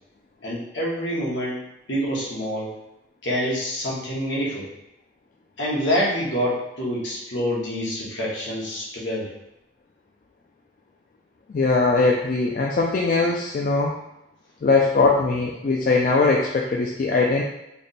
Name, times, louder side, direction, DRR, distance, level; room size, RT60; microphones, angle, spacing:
voice 1, 0.4-1.6 1.9-2.7 3.2-4.7 5.6-9.3, equal, 75° left, -5 dB, 1.2 m, -26 dB
voice 2, 11.5-13.9 14.6-17.4, left 3 dB, 45° left, -2 dB, 0.3 m, -20 dB
3.4 x 2.2 x 4.0 m, 0.87 s
head